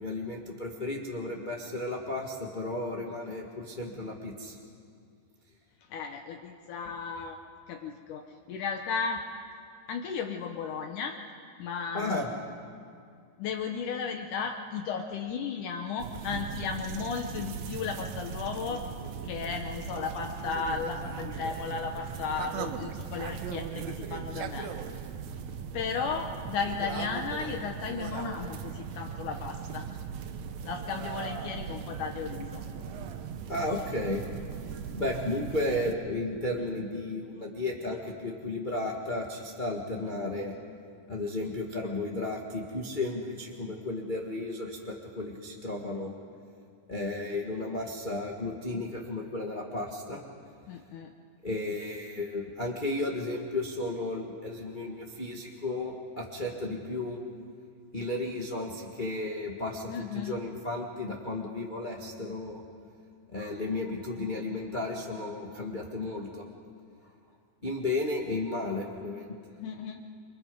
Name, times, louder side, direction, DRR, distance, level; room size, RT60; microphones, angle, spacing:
voice 1, 0.0-4.6 11.9-12.3 33.5-34.2 34.9-40.5 41.1-46.1 46.9-50.2 51.4-57.2 57.9-62.6 63.3-66.4 67.6-69.4, left 2 dB, 25° left, -1 dB, 1.0 m, -33 dB
voice 2, 5.9-7.4 7.7-9.2 9.9-11.2 11.6-12.2 13.4-18.8 19.2-24.7 25.7-29.9 30.6-32.6 50.7-51.1 59.9-60.4 69.6-70.0, left 5 dB, 70° left, 4 dB, 2.4 m, -35 dB
sound 1, 16.0-35.9, right 7 dB, 65° right, 2.0 m, -38 dB
29.0 x 25.0 x 5.3 m, 2.3 s
omnidirectional pair, 3.8 m